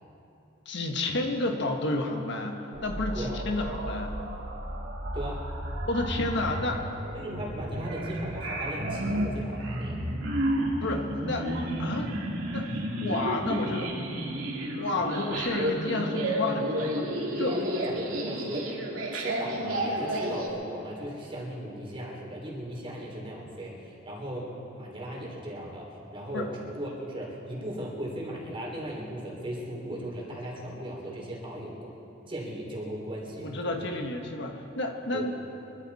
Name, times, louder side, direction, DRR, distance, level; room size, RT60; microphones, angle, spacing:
voice 1, 0.6-4.1 5.8-6.8 10.8-12.2 12.5-12.7 13.0-13.9 14.8-17.5 26.3-26.5 33.4-35.3, left 2 dB, 60° left, 3 dB, 1.5 m, -31 dB
sound 1, 2.7-20.5, right 1 dB, 90° right, 2.7 m, -32 dB
voice 2, 5.1-5.5 7.1-10.0 17.4-18.8 19.1-31.9 32.3-33.5 33.8-34.0 35.1-35.3, right 1 dB, 30° right, -3 dB, 3.4 m, -37 dB
24.5 x 13.5 x 4.2 m, 2.9 s
head